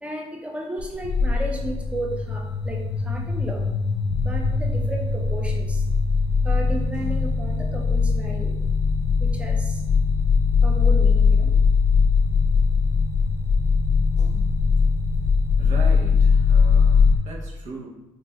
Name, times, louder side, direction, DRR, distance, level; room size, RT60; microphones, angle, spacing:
voice 1, 0.0-2.8 3.0-3.6 4.2-5.8 6.4-8.5 9.2-9.8 10.6-11.5, right 2 dB, 10° right, 1 dB, 0.5 m, -33 dB
sound 1, 0.8-17.2, left 5 dB, 70° left, 0.4 m, -20 dB
voice 2, 15.6-17.9, right 2 dB, 70° right, -3 dB, 0.9 m, -38 dB
4.1 x 3.2 x 2.2 m, 0.97 s
cardioid pair, 145°, 12 cm